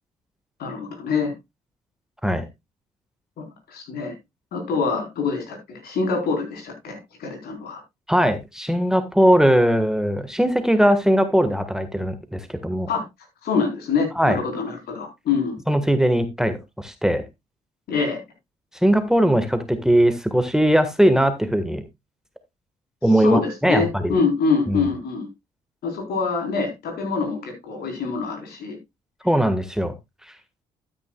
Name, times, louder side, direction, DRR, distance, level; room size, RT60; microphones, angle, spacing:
voice 1, 0.6-1.3 3.4-4.1 4.5-7.8 12.9-13.0 13.4-15.5 17.9-18.2 23.2-25.3 25.8-28.8, left 5 dB, 65° left, 3 dB, 4.0 m, -25 dB
voice 2, 8.1-12.9 14.2-14.4 15.7-17.2 18.8-21.8 23.0-24.1 24.7-24.9 29.2-29.9, equal, 5° right, 11 dB, 1.5 m, -20 dB
12.0 x 9.6 x 2.3 m, 0.21 s
hypercardioid pair, 45°, 17 cm